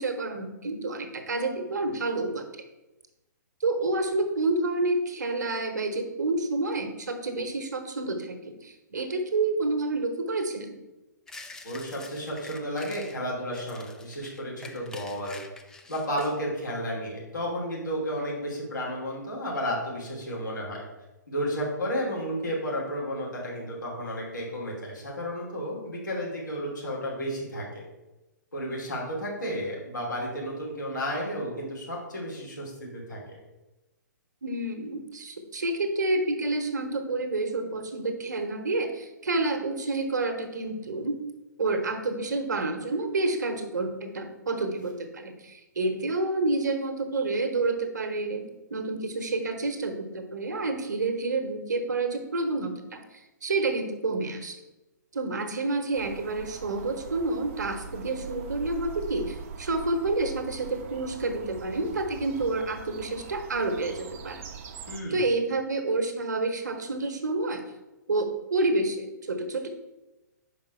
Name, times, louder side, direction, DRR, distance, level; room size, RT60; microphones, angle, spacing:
voice 1, 0.0-2.4 3.6-10.8 34.4-41.2 41.6-54.6 55.1-64.4 65.1-67.6 68.1-69.7, right 2 dB, 65° right, 6 dB, 1.0 m, -29 dB
sound 1, 11.3-13.2 13.5-16.4, left 3 dB, 5° left, 0.4 m, -46 dB
voice 2, 11.6-15.4 15.9-20.8 21.3-27.8 28.5-33.4 64.9-65.3, equal, 75° left, -4 dB, 2.7 m, -32 dB
sound 2, 55.9-65.0, right 6 dB, 40° right, 0.7 m, -42 dB
5.3 x 5.1 x 5.6 m, 1.0 s
figure-of-eight pair, 120°, 10 cm